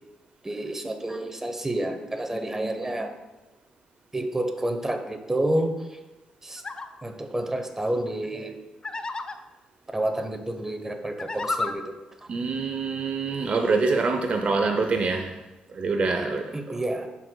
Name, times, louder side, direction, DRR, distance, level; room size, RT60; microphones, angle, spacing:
voice 1, 0.4-3.1 4.1-5.7 6.4-6.6 7.0-8.6 9.9-11.9 16.2-16.3 16.5-17.1, right 1 dB, 15° right, 6 dB, 0.8 m, -29 dB
sound 1, 6.6-6.9 8.8-9.4 11.1-11.7, left 3 dB, 30° left, 0.4 m, -31 dB
voice 2, 12.3-15.4 15.7-16.8, right 4 dB, 50° right, 4 dB, 0.5 m, -25 dB
10.5 x 4.5 x 2.2 m, 1.1 s
cardioid pair, 80°, 3 cm